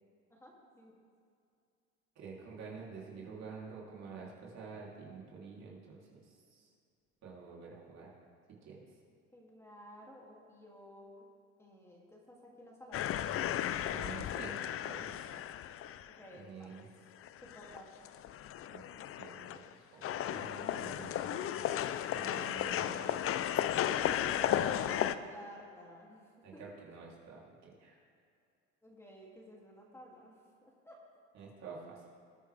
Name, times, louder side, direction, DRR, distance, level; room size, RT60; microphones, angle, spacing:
voice 1, 0.3-0.9 9.3-11.2 11.6-13.2 16.2-16.8 17.4-17.9 24.0-26.2 26.5-26.6 28.8-31.0, equal, 10° left, -3 dB, 2.7 m, -53 dB
voice 2, 2.1-6.7 7.2-8.2 8.6-8.8 13.8-15.1 16.3-16.9 18.6-18.8 19.2-21.8 22.1-23.2 24.6-25.1 26.4-28.0 31.3-32.0, right 5 dB, 55° right, -4 dB, 3.4 m, -49 dB
sound 1, 12.9-16.3 16.8-16.9 17.2-19.7 20.0-25.2, left 11 dB, 45° left, 0.5 m, -35 dB
20.0 x 9.5 x 3.5 m, 2.4 s
supercardioid pair, 90°, 32 cm